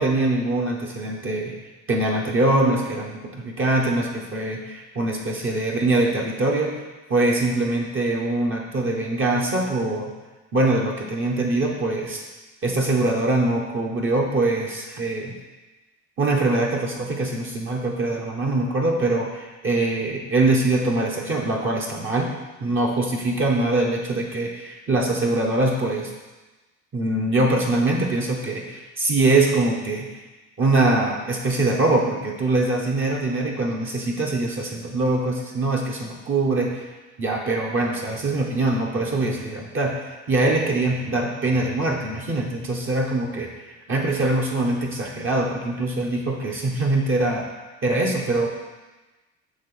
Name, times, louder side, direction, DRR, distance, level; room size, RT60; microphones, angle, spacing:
voice 1, 0.0-1.5 1.9-6.7 7.1-10.1 10.5-12.2 12.6-15.3 16.2-22.3 22.6-26.1 26.9-30.1 30.6-36.9 37.2-43.5 43.9-47.5 47.8-48.6, right 2 dB, 40° right, -1 dB, 1.2 m, -23 dB
7.6 x 3.4 x 6.2 m, 1.2 s
supercardioid pair, 95°, 33 cm